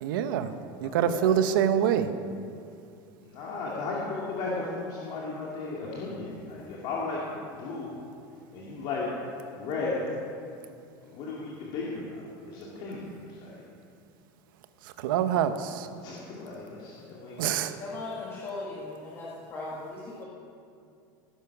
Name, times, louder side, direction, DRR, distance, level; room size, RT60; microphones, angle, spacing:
voice 1, 0.0-0.5 0.8-2.1 15.0-15.5 17.4-17.7, right 9 dB, 90° right, 1.0 m, -24 dB
voice 2, 1.1-1.4 3.2-8.0 8.5-9.1 9.5-10.0 11.1-13.6 16.0-17.7, left 3 dB, 45° left, 2.6 m, -35 dB
voice 3, 17.8-20.2, left 3 dB, 20° left, 1.9 m, -38 dB
18.0 x 10.5 x 6.1 m
supercardioid pair, 165°, 11 cm